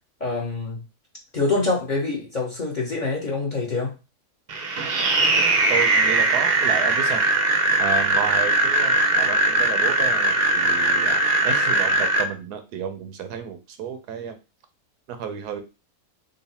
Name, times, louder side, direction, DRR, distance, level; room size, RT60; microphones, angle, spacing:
voice 1, 0.2-0.8 1.3-3.9, left 3 dB, 35° left, -3 dB, 0.9 m, -25 dB
sound 1, 4.5-12.2, right 2 dB, 55° right, 0.7 m, -20 dB
voice 2, 5.2-7.2 7.8-14.4 15.1-15.6, right 7 dB, 80° right, 8 dB, 1.2 m, -32 dB
3.9 x 2.2 x 4.1 m, 0.29 s
omnidirectional pair, 1.6 m